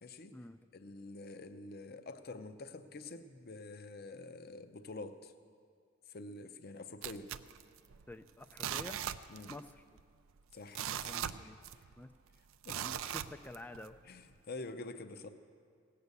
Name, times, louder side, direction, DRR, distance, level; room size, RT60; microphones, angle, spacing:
voice 1, 0.0-0.4 0.7-5.3 6.1-7.3 9.3-9.5 10.5-11.3 12.6-12.8 14.0-15.3, left 2 dB, 50° left, 9 dB, 0.6 m, -47 dB
sound 1, 7.0-8.1 8.5-9.7 10.0-10.1 10.5-12.0 12.6-13.9 14.4-14.5, right 10 dB, 75° right, 0.4 m, -40 dB
voice 2, 8.1-9.1 9.5-9.8 11.1-11.6 12.0-12.1 12.7-14.0, left 1 dB, 10° left, 9 dB, 0.3 m, -49 dB
16.5 x 6.7 x 8.2 m, 2.2 s
head